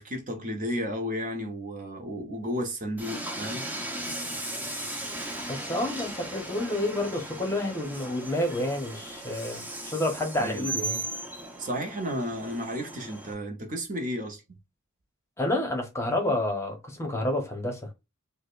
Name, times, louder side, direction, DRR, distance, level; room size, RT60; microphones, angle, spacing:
voice 1, 0.0-3.6 10.4-10.8 11.6-14.4, equal, 35° right, 0.9 m, -33 dB
Train, 3.0-13.3, right 2 dB, 10° right, 0.6 m, -37 dB
voice 2, 5.5-11.0 15.4-17.8, left 1 dB, 10° left, 1.0 m, -29 dB
4.9 x 2.2 x 2.5 m
head